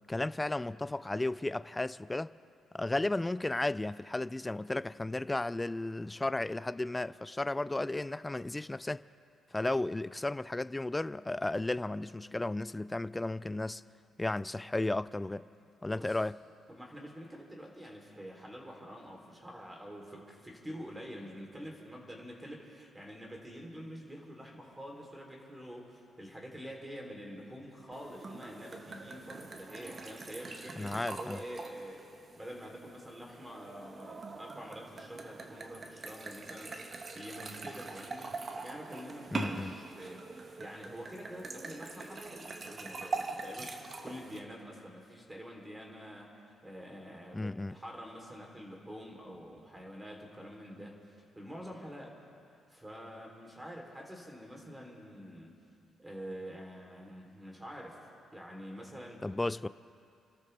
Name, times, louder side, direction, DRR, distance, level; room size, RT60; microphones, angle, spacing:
voice 1, 0.1-2.3 2.7-9.0 9.5-13.8 14.2-15.5 15.8-16.4 30.8-31.4 39.3-39.8 47.3-47.7 59.2-59.7, left 2 dB, 15° left, 0.3 m, -34 dB
voice 2, 15.9-16.2 16.7-38.3 38.6-40.2 40.6-52.2 52.7-55.6 56.0-58.0 58.3-59.2, equal, 10° right, 3.2 m, -47 dB
sound 1, 27.9-44.4, right 3 dB, 40° right, 1.2 m, -43 dB
30.0 x 13.0 x 3.4 m
cardioid pair, 90°, 0 cm